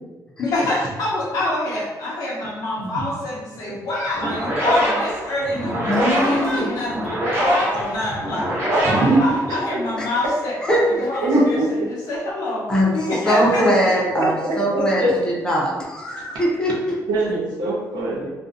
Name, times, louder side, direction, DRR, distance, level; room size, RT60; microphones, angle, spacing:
voice 1, 0.4-8.9 9.2-10.6 11.0-13.7, left 2 dB, 60° left, -5 dB, 0.5 m, -26 dB
sound 1, 4.1-10.0, equal, 40° right, 0.6 m, -23 dB
voice 2, 5.9-6.8 10.0-10.1 10.6-11.3 12.7-13.0 13.2-17.0, equal, 10° left, -4 dB, 0.5 m, -21 dB
voice 3, 8.8-9.2 11.2-11.7 13.4-15.1 17.1-18.3, right 2 dB, 80° right, -4 dB, 0.7 m, -22 dB
2.5 x 2.1 x 2.5 m, 1.2 s
wide cardioid pair, 175°, 7 cm